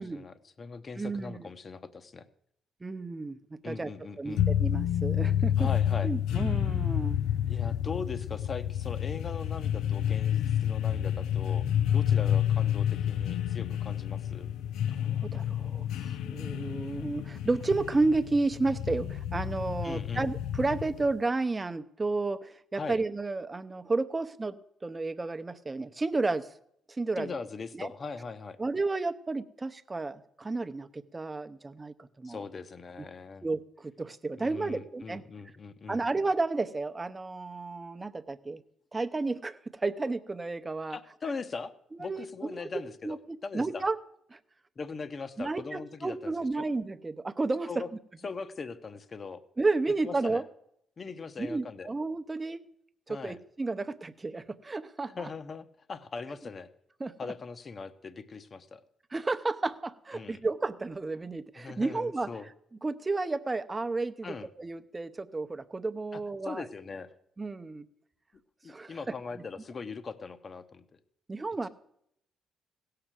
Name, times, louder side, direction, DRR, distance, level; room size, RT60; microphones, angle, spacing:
voice 1, 0.0-2.3 3.6-4.4 5.6-6.1 7.5-11.7 11.9-14.5 19.8-20.3 22.7-23.0 27.2-28.6 32.2-33.4 34.4-36.1 40.9-41.7 42.0-43.8 44.8-46.6 47.7-47.9 48.2-49.4 50.0-50.4 51.0-51.9 53.1-53.4 55.1-56.7 57.2-58.8 60.1-60.4 61.5-62.5 64.2-64.5 66.1-67.1 68.6-70.8 71.6-71.7, left 4 dB, 40° left, 11 dB, 0.9 m, -40 dB
voice 2, 1.0-1.5 2.8-3.9 4.2-5.7 6.0-7.2 15.0-26.5 26.9-27.3 27.8-27.9 28.6-32.4 33.4-35.2 35.9-38.6 38.9-41.0 41.9-44.0 44.3-44.4 45.4-47.8 49.6-50.4 51.4-52.6 53.1-55.3 57.0-57.3 59.1-62.3 62.8-66.7 67.4-67.9 68.7-69.0 71.3-71.7, right 3 dB, 25° right, 10 dB, 0.8 m, -32 dB
sound 1, 4.4-21.2, left 10 dB, 85° left, 0.4 m, -29 dB
16.0 x 6.7 x 7.5 m, 0.73 s
cardioid pair, 75°, 0 cm